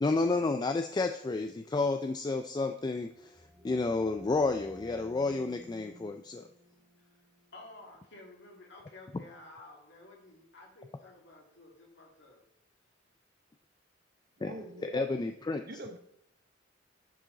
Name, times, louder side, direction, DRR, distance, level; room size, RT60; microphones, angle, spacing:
voice 1, 0.0-6.5 9.1-9.2 14.4-14.5 14.8-15.6, left 3 dB, 20° left, 7 dB, 0.3 m, -31 dB
sound 1, 3.1-8.6, equal, 10° right, 0.8 m, -55 dB
voice 2, 7.5-12.5, left 2 dB, 65° left, -1 dB, 2.4 m, -53 dB
voice 3, 14.4-15.1 15.6-16.0, right 2 dB, 55° right, 6 dB, 1.0 m, -43 dB
10.0 x 5.0 x 3.9 m, 0.74 s
head